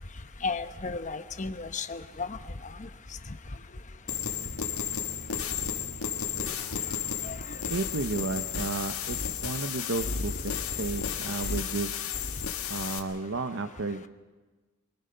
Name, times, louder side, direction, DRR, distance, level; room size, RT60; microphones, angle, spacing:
voice 1, 0.4-2.4 2.7-2.9 3.3-3.4 6.4-6.5 7.2-7.6, left 4 dB, 35° left, 10 dB, 1.0 m, -35 dB
sound 1, 4.1-13.0, left 7 dB, 85° left, 1.8 m, -33 dB
voice 2, 7.7-11.9 12.7-14.1, right 3 dB, 60° right, 9 dB, 0.8 m, -33 dB
24.5 x 24.5 x 5.7 m, 1.3 s
head